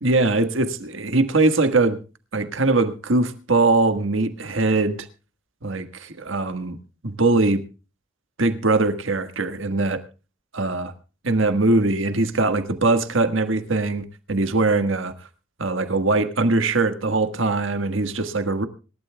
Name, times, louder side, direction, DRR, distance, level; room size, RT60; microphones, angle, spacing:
voice 1, 0.0-2.0 2.3-5.1 5.6-6.8 7.0-7.6 8.4-10.0 10.5-10.9 11.2-15.1 15.6-18.7, right 3 dB, 70° right, 1.6 m, -21 dB
26.5 x 12.5 x 2.3 m
head